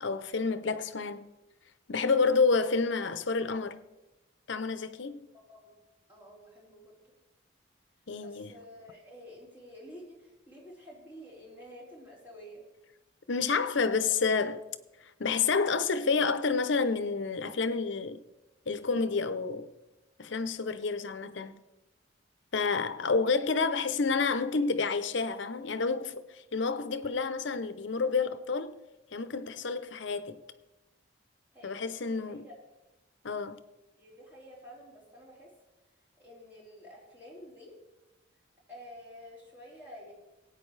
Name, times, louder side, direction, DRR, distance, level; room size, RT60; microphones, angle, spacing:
voice 1, 0.0-1.3 1.9-3.8 4.5-5.3 8.1-8.5 13.3-14.6 15.2-18.2 18.7-19.7 20.2-21.6 22.5-28.8 29.1-30.4 31.6-32.4 33.2-33.6, left 4 dB, 70° left, 0.7 m, -29 dB
voice 2, 5.3-5.8 6.1-6.9 8.1-12.6 31.5-32.5 33.9-35.5 36.2-37.8 38.7-40.1, equal, 10° right, 4.0 m, -50 dB
18.5 x 9.1 x 3.3 m
head